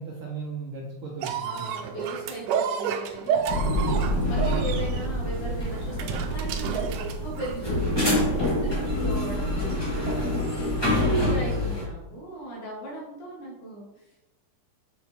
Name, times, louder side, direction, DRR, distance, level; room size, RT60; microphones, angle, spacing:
voice 1, 0.0-2.0 10.7-11.3, right 5 dB, 65° right, -4 dB, 1.4 m, -37 dB
sound 1, 1.2-7.7 8.4-8.5, right 7 dB, 85° right, 2.2 m, -30 dB
voice 2, 1.4-14.0, right 2 dB, 80° left, -3 dB, 3.3 m, -38 dB
sound 2, 3.5-11.8, left 1 dB, 10° left, 1.6 m, -26 dB
6.8 x 6.1 x 3.0 m, 0.96 s
omnidirectional pair, 3.6 m